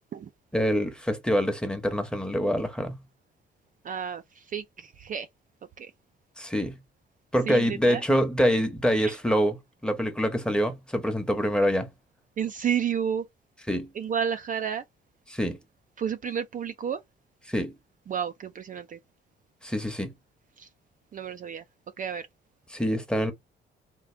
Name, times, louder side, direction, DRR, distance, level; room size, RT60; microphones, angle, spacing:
voice 1, 0.5-3.0 6.4-6.8 7.3-11.9 13.7-13.9 15.3-15.6 17.5-17.7 19.6-20.1 22.7-23.3, equal, 5° left, 1.0 m, -25 dB
voice 2, 3.8-4.2 4.5-5.3 5.8-5.9 7.5-8.0 9.0-9.1 12.4-13.2 14.0-14.8 16.0-17.0 18.1-19.0 20.6-20.7 21.1-21.6 22.0-22.3, right 8 dB, 40° right, 0.4 m, -31 dB
3.6 x 2.4 x 3.2 m
cardioid pair, 90°, 20 cm